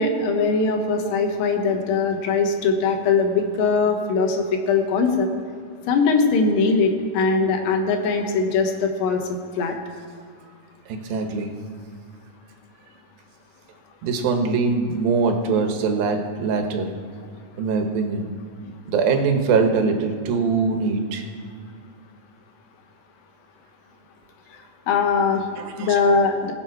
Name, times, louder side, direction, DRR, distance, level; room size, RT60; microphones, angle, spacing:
voice 1, 0.0-5.3 5.9-9.2 9.6-9.7 24.9-25.4 25.8-26.5, left 4 dB, 85° left, 4 dB, 3.0 m, -21 dB
voice 2, 10.9-11.5 14.0-16.9 17.6-18.3 18.9-21.3 25.6-26.0, right 4 dB, 90° right, 5 dB, 3.0 m, -22 dB
21.5 x 7.7 x 4.7 m, 2.2 s
omnidirectional pair, 4.0 m